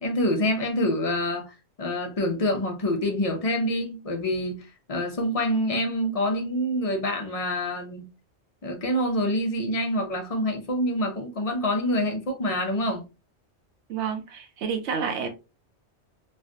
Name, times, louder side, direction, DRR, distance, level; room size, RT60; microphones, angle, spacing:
voice 1, 0.0-8.1 8.6-13.0, left 1 dB, 40° left, 0.6 m, -26 dB
voice 2, 13.9-15.3, right 6 dB, 85° right, 0.9 m, -29 dB
3.3 x 2.2 x 2.5 m
omnidirectional pair, 1.2 m